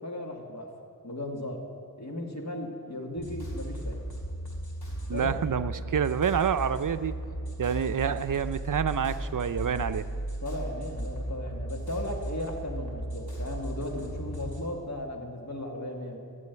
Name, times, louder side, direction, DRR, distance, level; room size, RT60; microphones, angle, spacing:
voice 1, 0.0-0.7 1.0-1.7 2.0-4.1 5.1-5.4 10.4-16.2, left 1 dB, 45° left, 1 dB, 2.1 m, -36 dB
sound 1, 3.2-14.6, right 1 dB, 75° left, 2.9 m, -36 dB
voice 2, 5.1-7.2 7.6-10.1, right 7 dB, 55° right, 12 dB, 0.6 m, -28 dB
13.0 x 7.8 x 9.4 m, 2.4 s
wide cardioid pair, 70°, 38 cm